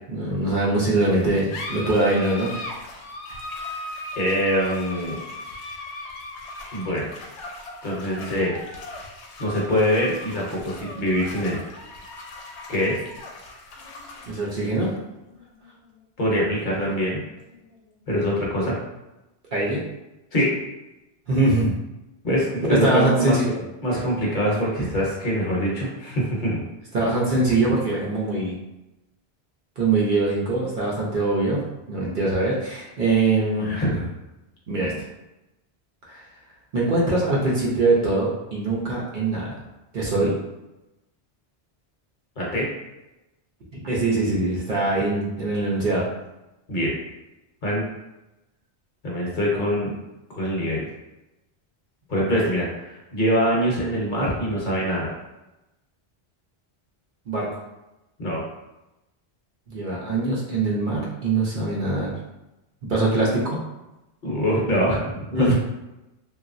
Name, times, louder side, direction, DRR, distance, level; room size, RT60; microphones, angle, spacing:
voice 1, 0.1-2.5 14.3-14.9 19.5-19.8 21.3-21.7 22.7-23.5 26.9-28.6 29.8-31.6 31.9-33.7 34.7-34.9 36.1-36.2 36.7-39.5 39.9-40.3 43.7-46.1 57.3-57.5 59.7-62.1 62.8-63.6 65.3-65.5, right 2 dB, 55° right, -5 dB, 0.7 m, -22 dB
sound 1, 1.1-18.1, left 2 dB, 85° left, 0.9 m, -39 dB
voice 2, 4.2-5.2 6.7-7.1 7.8-8.5 9.4-11.6 12.7-13.0 16.2-17.2 18.1-18.7 20.3-20.6 22.2-23.3 23.8-26.6 33.6-34.1 42.4-42.7 45.1-45.2 46.7-47.0 47.6-47.8 49.0-49.9 50.3-50.8 52.1-55.1 58.2-58.4 64.2-65.5, equal, 50° left, -4 dB, 0.8 m, -24 dB
2.9 x 2.3 x 2.5 m, 0.97 s
omnidirectional pair, 1.1 m